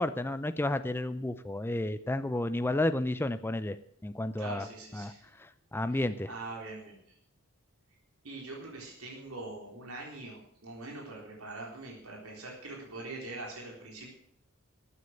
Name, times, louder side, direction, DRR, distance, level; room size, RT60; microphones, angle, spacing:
voice 1, 0.0-3.8 4.0-4.7 4.9-5.1 5.4-6.3, left 1 dB, 10° left, 11 dB, 0.5 m, -31 dB
voice 2, 4.4-5.2 5.9-7.0 8.2-14.1, right 2 dB, 80° right, -2 dB, 4.0 m, -43 dB
14.0 x 9.7 x 6.5 m, 0.69 s
head